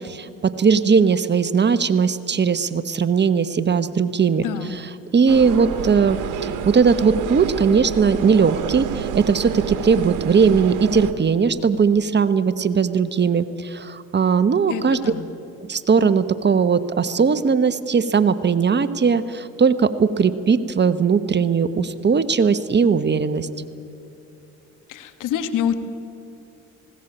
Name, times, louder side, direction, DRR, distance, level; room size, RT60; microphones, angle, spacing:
voice 1, 0.0-4.4 5.1-6.2 6.6-15.1 15.6-23.5, right 5 dB, 30° right, 13 dB, 1.1 m, -19 dB
voice 2, 4.4-4.8 14.7-15.3 24.9-25.7, left 9 dB, 70° left, 10 dB, 1.7 m, -26 dB
sound 1, 5.3-11.1, right 8 dB, 70° right, 1.6 m, -29 dB
19.5 x 17.0 x 8.9 m, 2.8 s
supercardioid pair, 65°, 33 cm